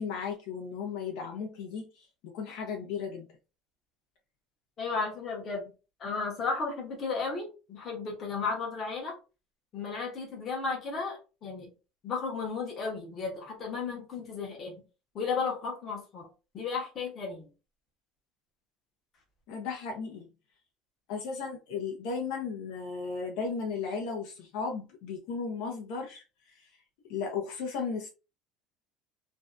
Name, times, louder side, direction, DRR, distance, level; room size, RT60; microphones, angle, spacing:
voice 1, 0.0-3.3 19.5-20.3 21.1-26.2 26.5-26.6 27.1-28.1, left 5 dB, 65° left, 0.6 m, -35 dB
voice 2, 4.8-5.7 6.0-9.1 9.7-11.7 12.0-14.8 15.1-16.3 16.5-17.5, left 4 dB, 30° left, 0.8 m, -34 dB
2.5 x 2.2 x 2.4 m
cardioid pair, 175°, 0 cm